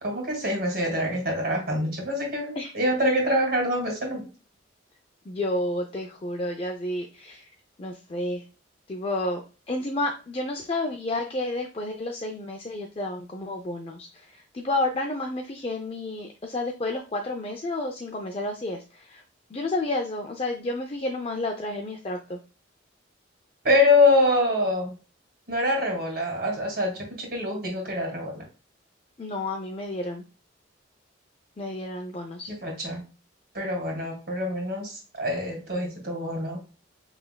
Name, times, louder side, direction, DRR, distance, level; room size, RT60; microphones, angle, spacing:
voice 1, 0.0-4.3 23.6-24.9 25.5-28.4 32.5-33.1 33.5-36.6, left 1 dB, 50° right, 0 dB, 2.1 m, -25 dB
voice 2, 5.3-7.4 7.8-8.4 8.9-9.4 9.7-19.2 19.5-22.4 29.2-30.2 31.6-32.5, left 2 dB, 30° left, 3 dB, 0.4 m, -31 dB
5.8 x 3.4 x 2.2 m, 0.35 s
head